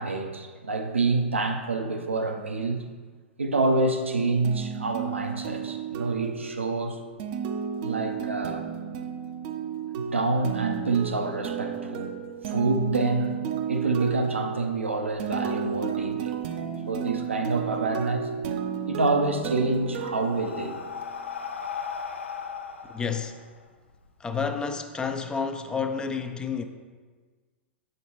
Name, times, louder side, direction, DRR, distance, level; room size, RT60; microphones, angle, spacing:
voice 1, 0.0-2.8 3.4-7.0 7.8-8.6 10.0-12.1 12.5-13.4 13.7-16.3 16.9-18.3 18.9-20.8, right 3 dB, 80° right, 0.7 m, -27 dB
sound 1, 4.4-21.1, right 7 dB, 45° right, 0.5 m, -33 dB
Breathing, 19.3-24.1, left 6 dB, 80° left, 0.6 m, -37 dB
voice 2, 22.9-23.4 24.2-26.6, left 5 dB, 10° left, 0.4 m, -30 dB
7.0 x 6.4 x 2.9 m
figure-of-eight pair, 105°, 7 cm